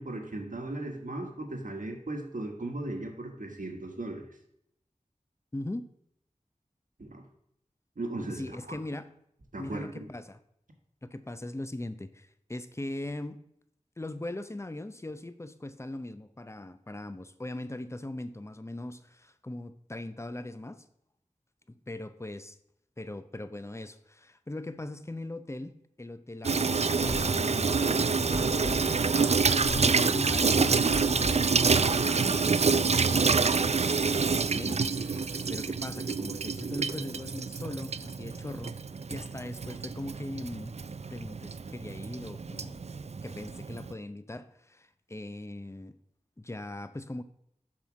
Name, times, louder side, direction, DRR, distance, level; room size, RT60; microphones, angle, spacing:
voice 1, 0.0-4.2 7.0-7.2 8.0-8.4 8.7-8.8 9.5-10.1, right 2 dB, 80° right, 3 dB, 1.5 m, -37 dB
voice 2, 5.5-5.9 8.3-9.1 9.6-10.4 11.0-13.4 14.0-20.9 21.7-22.6 23.0-29.0 29.4-38.8 39.1-40.7 41.1-42.9 43.2-46.0 46.4-47.2, left 1 dB, 20° left, 12 dB, 0.6 m, -40 dB
Water tap faucet / Sink (filling or washing), 26.4-43.9, right 5 dB, 55° right, 0.4 m, -27 dB
sound 1, 27.0-32.2, left 1 dB, 60° left, 2.3 m, -38 dB
sound 2, 30.2-35.7, right 1 dB, 35° right, 1.1 m, -50 dB
7.4 x 5.7 x 6.1 m, 0.75 s
wide cardioid pair, 55°, 13 cm